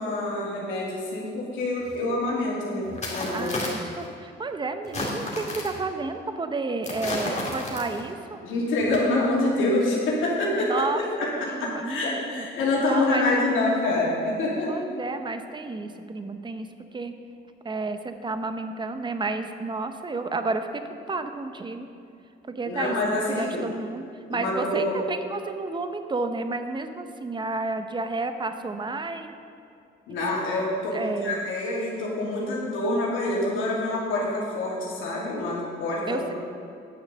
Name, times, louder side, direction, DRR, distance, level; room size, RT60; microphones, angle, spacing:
voice 1, 0.0-3.5 8.4-10.7 11.0-11.3 11.6-14.7 22.7-23.6 24.3-25.0 30.1-36.4, left 2 dB, 85° left, -4 dB, 2.7 m, -26 dB
sound 1, 1.9-2.0 2.9-4.1 4.8-5.8 6.8-8.1 8.8-9.0, left 2 dB, 35° left, 2.5 m, -32 dB
voice 2, 3.3-8.4 10.6-11.0 11.5-12.5 12.8-13.3 14.7-16.7 16.9-17.1 17.6-21.9 22.5-22.9 23.3-24.0 24.3-29.3 30.1-30.2 30.9-31.4 36.1-36.4, right 3 dB, 25° right, 8 dB, 0.8 m, -31 dB
9.9 x 6.4 x 6.6 m, 2.5 s
cardioid pair, 90°, 20 cm